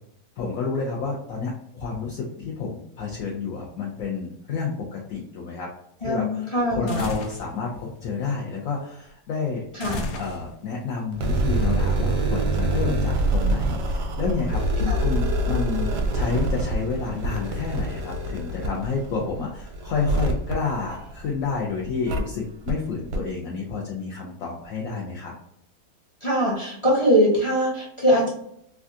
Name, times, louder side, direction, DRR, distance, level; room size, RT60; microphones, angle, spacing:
voice 1, 0.4-5.7 6.0-9.7 10.2-25.3, left 4 dB, 65° left, -2 dB, 0.9 m, -30 dB
voice 2, 6.0-7.0 9.7-10.0 14.8-15.0 26.2-28.3, equal, 45° left, -5 dB, 0.4 m, -22 dB
sound 1, 6.9-7.5 9.8-10.7, left 2 dB, 85° left, 1.2 m, -32 dB
sound 2, 11.1-21.5 22.1-22.2 22.7-22.8 23.1-23.2, right 1 dB, 90° right, 1.2 m, -25 dB
3.3 x 2.4 x 2.5 m, 0.71 s
omnidirectional pair, 1.8 m